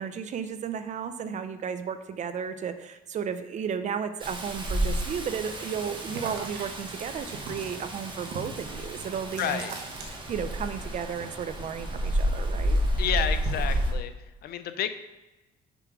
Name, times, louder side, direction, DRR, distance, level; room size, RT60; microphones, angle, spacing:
voice 1, 0.0-9.6 10.1-12.8, right 7 dB, 45° right, 11 dB, 0.6 m, -34 dB
Rain, 4.2-13.9, equal, 30° right, 1.2 m, -31 dB
sound 1, 6.1-10.6 10.9-12.5 12.8-13.8, right 2 dB, 75° right, 1.4 m, -41 dB
voice 2, 9.4-9.7 13.0-14.1 14.4-14.9, left 10 dB, 65° left, 10 dB, 0.6 m, -30 dB
6.8 x 3.6 x 5.9 m, 1.1 s
cardioid pair, 110°, 17 cm